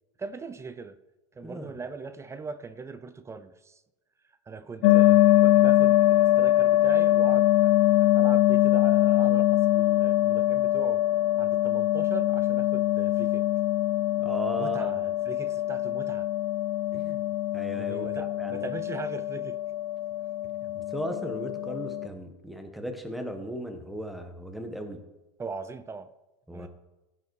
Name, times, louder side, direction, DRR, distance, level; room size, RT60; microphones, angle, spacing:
voice 1, 0.2-1.0 1.4-3.8 4.5-11.0 11.4-13.4 14.6-16.3 17.7-19.6 25.4-26.1 26.5-26.7, right 4 dB, 15° right, 13 dB, 0.6 m, -40 dB
voice 2, 1.4-1.7 4.8-5.2 14.2-14.9 16.9-17.2 17.5-18.6 20.6-25.0 26.5-26.7, equal, ahead, 5 dB, 1.4 m, -36 dB
sound 1, 4.8-22.1, left 14 dB, 65° left, 0.7 m, -23 dB
15.5 x 5.5 x 4.8 m, 1.0 s
supercardioid pair, 120°, 17 cm